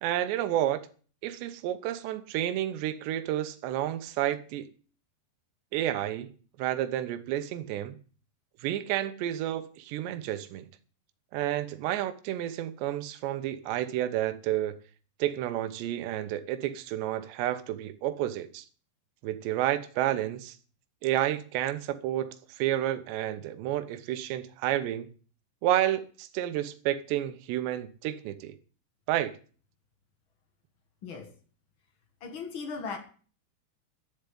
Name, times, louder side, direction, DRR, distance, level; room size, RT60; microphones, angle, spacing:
voice 1, 0.0-0.8 1.2-4.7 5.7-6.3 6.6-8.0 8.6-10.7 11.3-14.8 15.2-18.7 19.2-20.6 21.0-25.1 25.6-28.5 29.1-29.4, right 12 dB, 75° right, 3.1 m, -30 dB
voice 2, 31.0-31.3 32.2-33.0, left 5 dB, 65° left, 1.2 m, -37 dB
11.0 x 7.1 x 9.4 m
omnidirectional pair, 5.3 m